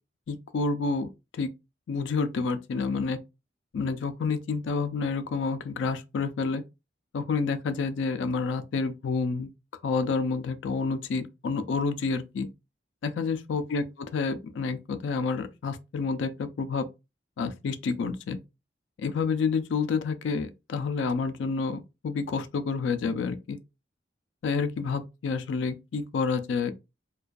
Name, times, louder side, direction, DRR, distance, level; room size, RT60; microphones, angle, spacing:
voice 1, 0.3-1.1 1.4-1.5 1.9-3.2 3.7-6.6 7.1-9.5 9.8-12.5 13.0-13.8 14.1-16.9 17.4-18.4 19.0-23.6 24.4-26.7, left 4 dB, 80° left, 0.3 m, -29 dB
2.4 x 2.2 x 2.2 m
head